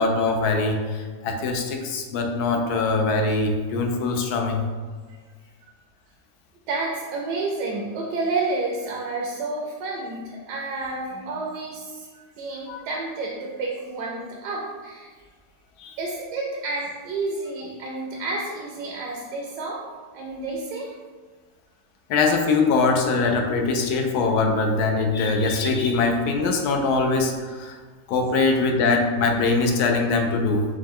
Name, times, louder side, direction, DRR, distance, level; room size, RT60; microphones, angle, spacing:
voice 1, 0.0-4.6 12.7-12.9 15.8-16.0 22.1-27.8 28.1-30.7, left 3 dB, 70° left, 3 dB, 1.0 m, -22 dB
voice 2, 5.1-5.5 6.7-15.2 16.0-19.9 20.1-21.0, right 3 dB, 80° right, -1 dB, 1.2 m, -30 dB
5.0 x 2.2 x 3.6 m, 1.5 s
omnidirectional pair, 1.9 m